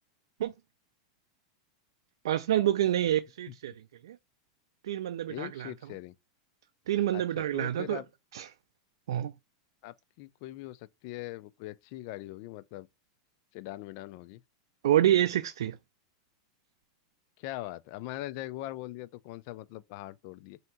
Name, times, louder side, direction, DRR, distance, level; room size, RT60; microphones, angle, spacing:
voice 1, 2.2-3.7 4.0-4.2 4.8-5.7 6.9-8.0 8.3-8.5 9.1-9.3 14.8-15.8, right 12 dB, 85° right, 0.3 m, -27 dB
voice 2, 5.3-6.1 7.1-8.1 9.8-12.9 13.5-14.4 17.4-20.6, left 16 dB, 50° left, 0.3 m, -41 dB
3.4 x 2.8 x 4.3 m
supercardioid pair, 150°, 2 cm